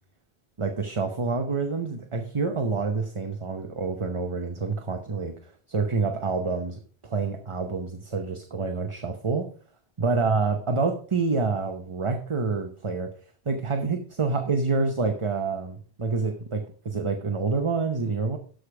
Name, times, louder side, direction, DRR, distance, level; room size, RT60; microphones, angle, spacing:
voice 1, 0.6-9.5 10.0-13.1 13.5-18.4, right 4 dB, 30° right, 5 dB, 0.8 m, -27 dB
13.0 x 5.0 x 4.8 m, 0.43 s
omnidirectional pair, 1.1 m